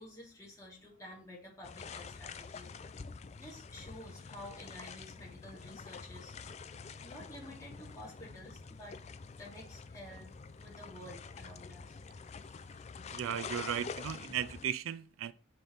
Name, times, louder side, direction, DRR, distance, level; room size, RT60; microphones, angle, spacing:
voice 1, 0.0-2.7 3.3-6.3 7.0-9.0 9.4-10.3 10.6-12.0, left 1 dB, 15° left, 2.5 m, -51 dB
sound 1, 1.6-14.7, left 5 dB, 35° left, 0.3 m, -47 dB
voice 2, 13.1-15.3, right 9 dB, 80° right, 0.4 m, -36 dB
7.4 x 3.5 x 3.9 m
head